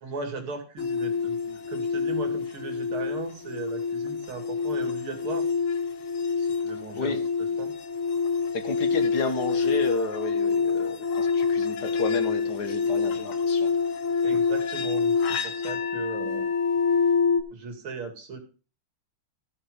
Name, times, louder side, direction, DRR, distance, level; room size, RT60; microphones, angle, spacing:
voice 1, 0.0-5.4 6.4-7.7 14.2-15.2 15.4-16.4 17.5-18.4, right 4 dB, 75° right, 5 dB, 3.3 m, -37 dB
sound 1, 0.8-17.4, left 5 dB, 75° left, 2.1 m, -26 dB
voice 2, 8.5-13.7, left 4 dB, 50° left, 8 dB, 1.9 m, -32 dB
15.5 x 6.9 x 5.4 m, 0.35 s
omnidirectional pair, 2.3 m